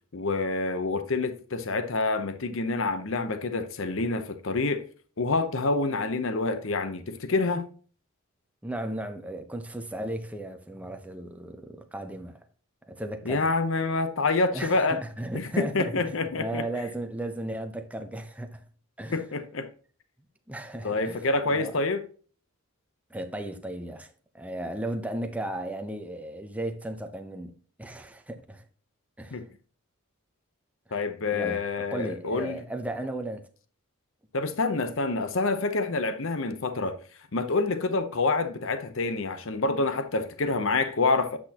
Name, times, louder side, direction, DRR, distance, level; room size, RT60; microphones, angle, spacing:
voice 1, 0.1-4.8 5.2-7.7 13.3-15.0 15.3-16.6 19.1-19.7 20.8-22.0 29.3-29.4 30.9-32.6 34.3-37.0 37.3-41.4, left 3 dB, 60° left, 0.8 m, -27 dB
voice 2, 8.6-12.4 12.9-13.5 14.5-18.7 19.0-19.2 20.5-21.8 23.1-28.6 29.2-29.4 30.9-31.0 31.3-31.6 31.9-33.5, right 1 dB, 5° right, 0.8 m, -35 dB
8.5 x 6.0 x 2.9 m
head